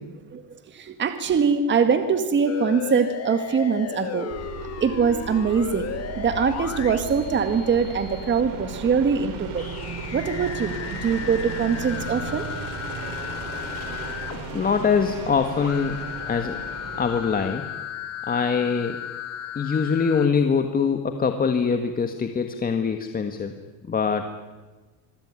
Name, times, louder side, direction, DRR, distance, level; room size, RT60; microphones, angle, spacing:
voice 1, 0.3-4.3 4.8-9.7 10.1-12.5, right 6 dB, 30° right, 8 dB, 1.9 m, -23 dB
sound 1, 2.5-8.4 9.6-20.3, left 9 dB, 40° left, 2.0 m, -35 dB
sound 2, 4.3-17.5, right 5 dB, 55° right, 5.6 m, -36 dB
voice 2, 14.5-16.0 16.3-16.6 17.0-17.6 18.3-19.0 19.5-23.5 23.9-24.3, left 6 dB, 25° left, 7 dB, 1.6 m, -23 dB
26.0 x 22.5 x 9.8 m, 1.3 s
cardioid pair, 150°, 38 cm